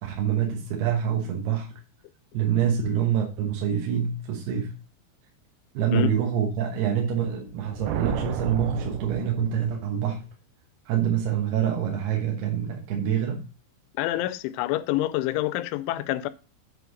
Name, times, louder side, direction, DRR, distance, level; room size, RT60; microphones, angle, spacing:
voice 1, 0.0-1.7 2.3-4.7 5.7-10.2 10.9-13.4, right 8 dB, 70° right, 2.9 m, -26 dB
sound 1, 7.4-9.9, right 10 dB, 90° right, 2.2 m, -33 dB
voice 2, 14.0-16.3, left 15 dB, 90° left, 3.0 m, -27 dB
7.9 x 5.8 x 3.9 m
omnidirectional pair, 5.3 m